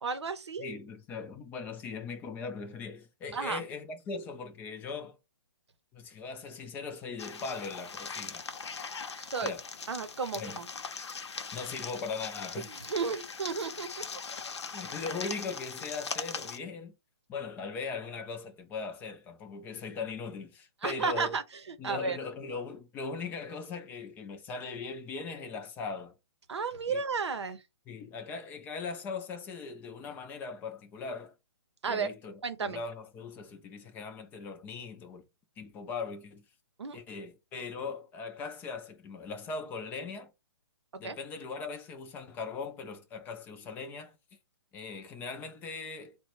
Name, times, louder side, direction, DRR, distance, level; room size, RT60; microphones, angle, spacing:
voice 1, 0.0-0.7 3.3-3.6 9.2-9.5 9.9-10.7 12.8-14.0 20.8-21.4 21.7-22.2 26.5-27.6 31.8-32.1 32.4-32.8 36.8-37.0 41.0-41.2, right 5 dB, 85° right, 0.6 m, -33 dB
voice 2, 0.6-5.2 5.9-8.4 9.4-9.6 10.3-10.6 11.5-12.7 14.7-16.9 17.3-21.4 21.8-26.1 26.9-27.0 27.9-31.3 31.8-35.2 35.6-36.4 36.9-40.3 41.0-44.2 44.7-46.2, left 4 dB, 15° left, 0.3 m, -39 dB
sound 1, 7.2-16.6, left 5 dB, 85° left, 0.7 m, -40 dB
3.9 x 2.1 x 3.0 m
hypercardioid pair, 145°, 14 cm